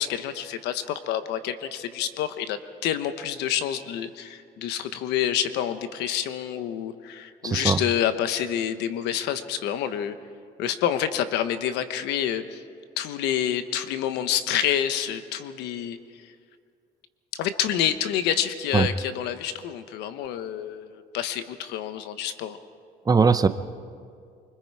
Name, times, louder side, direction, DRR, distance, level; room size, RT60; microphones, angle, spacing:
voice 1, 0.0-10.2 10.6-12.6 13.0-16.0 16.2-16.3 17.3-22.6, left 10 dB, 90° left, 10 dB, 1.1 m, -28 dB
voice 2, 7.4-7.8 18.7-18.9 23.1-23.5, right 5 dB, 20° right, 12 dB, 0.8 m, -19 dB
24.5 x 24.5 x 4.8 m, 2.2 s
cardioid pair, 110°, 17 cm